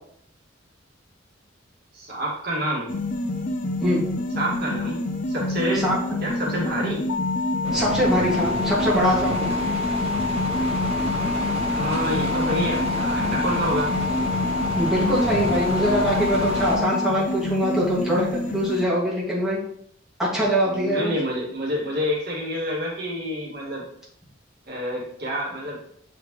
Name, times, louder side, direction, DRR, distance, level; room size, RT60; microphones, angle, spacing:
voice 1, 1.9-2.9 4.4-5.0 5.3-5.9 6.2-7.1 11.7-13.9 20.6-23.8 24.7-25.8, equal, 55° right, -4 dB, 2.2 m, -28 dB
sound 1, 2.9-18.9, left 1 dB, 45° left, 0.6 m, -28 dB
sound 2, 7.1-17.1, left 4 dB, 90° left, 0.7 m, -29 dB
sound 3, 7.6-16.8, right 1 dB, 35° right, 1.4 m, -30 dB
voice 2, 7.7-9.4 14.8-19.6 20.2-21.1, equal, 5° right, -8 dB, 2.2 m, -23 dB
7.9 x 4.9 x 3.2 m, 0.66 s
head